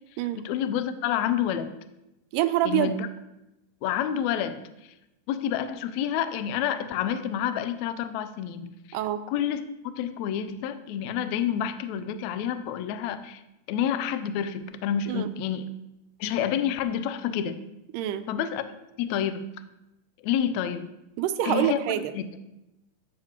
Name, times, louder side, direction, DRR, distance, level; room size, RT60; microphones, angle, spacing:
voice 1, 0.3-1.7 2.6-3.1 3.8-4.9 5.3-9.0 9.3-13.4 13.7-15.7 16.2-17.6 18.3-18.6 19.0-19.5 20.2-20.9 21.4-21.8 22.1-22.4, left 9 dB, 80° left, 11 dB, 1.6 m, -29 dB
voice 2, 2.3-2.9 8.9-9.3 15.1-15.3 17.9-18.3 21.2-22.1, right 12 dB, 85° right, 10 dB, 2.2 m, -26 dB
14.5 x 7.5 x 3.0 m, 0.93 s
omnidirectional pair, 3.8 m